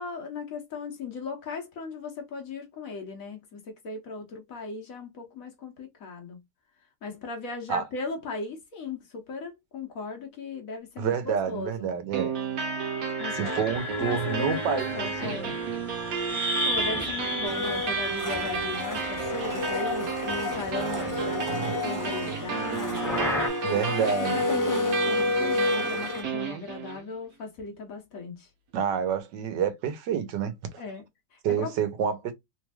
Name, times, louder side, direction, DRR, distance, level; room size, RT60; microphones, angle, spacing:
voice 1, 0.0-6.4 7.0-11.9 13.2-13.7 14.0-15.6 16.6-23.2 23.8-28.5 30.8-31.8, left 4 dB, 55° left, 1.2 m, -37 dB
voice 2, 11.0-12.3 13.3-15.5 21.5-21.7 23.6-24.4 28.7-30.8 31.4-32.3, right 8 dB, 80° right, 1.4 m, -28 dB
sound 1, 12.1-27.1, right 5 dB, 60° right, 1.3 m, -32 dB
sound 2, 13.2-19.9 20.1-21.5 22.4-23.5, left 1 dB, ahead, 0.9 m, -34 dB
Domestic sounds home sounds, 17.4-26.2, left 3 dB, 20° left, 0.5 m, -31 dB
3.4 x 3.1 x 2.2 m
omnidirectional pair, 1.9 m